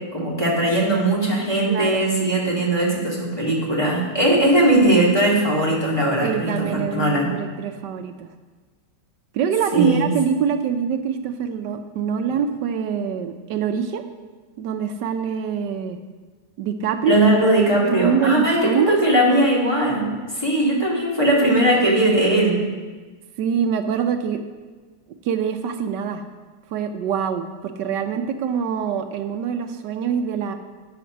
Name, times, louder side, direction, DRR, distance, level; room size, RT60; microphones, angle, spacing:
voice 1, 0.1-7.3 9.7-10.1 17.1-22.6, right 1 dB, 15° left, -4 dB, 2.2 m, -19 dB
voice 2, 1.7-2.0 6.2-8.3 9.3-14.0 14.6-16.0 16.6-17.2 17.8-19.0 23.4-24.4 25.2-26.2 26.7-30.5, right 7 dB, 70° right, 7 dB, 1.2 m, -24 dB
9.1 x 5.8 x 6.2 m, 1.4 s
omnidirectional pair, 2.0 m